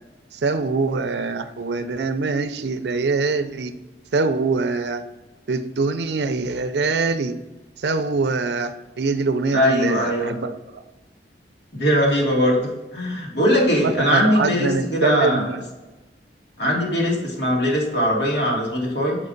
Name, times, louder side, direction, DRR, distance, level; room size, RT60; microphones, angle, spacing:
voice 1, 0.3-3.7 4.1-5.0 5.5-7.4 7.8-10.8 13.8-15.6, right 3 dB, 75° right, 10 dB, 0.5 m, -24 dB
voice 2, 9.5-10.3 11.7-15.5 16.6-19.2, equal, 80° left, -3 dB, 2.3 m, -20 dB
6.2 x 5.3 x 3.9 m, 1.1 s
head